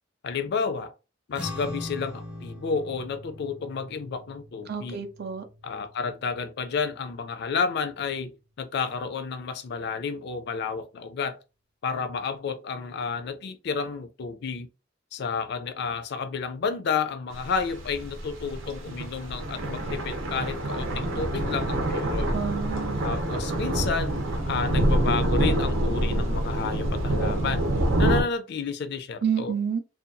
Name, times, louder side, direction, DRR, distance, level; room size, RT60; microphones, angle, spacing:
voice 1, 0.2-0.9 1.3-5.0 5.6-11.4 11.8-14.7 15.1-22.3 23.0-27.7 28.0-29.5, left 5 dB, 60° left, 0.4 m, -31 dB
sound 1, 1.3-8.0, left 1 dB, 5° right, 0.5 m, -42 dB
voice 2, 4.7-5.4 22.3-23.1 29.2-29.8, right 7 dB, 55° right, 0.4 m, -29 dB
sound 2, 17.3-28.2, right 1 dB, 90° right, 0.7 m, -26 dB
2.7 x 2.3 x 2.6 m
head